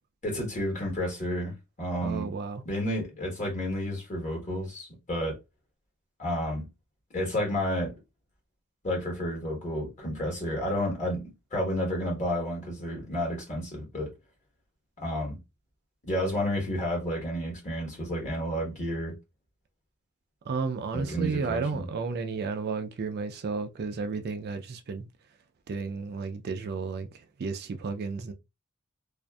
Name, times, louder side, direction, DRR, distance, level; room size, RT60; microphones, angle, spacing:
voice 1, 0.2-2.3 2.6-5.4 6.2-6.7 7.1-8.0 8.8-14.1 15.0-15.4 16.0-19.1 20.9-21.8, equal, 35° left, 1.2 m, -31 dB
voice 2, 2.0-2.6 16.7-16.8 20.5-25.1 25.7-27.1 27.4-28.3, right 4 dB, 50° right, 0.4 m, -32 dB
2.5 x 2.4 x 2.2 m
head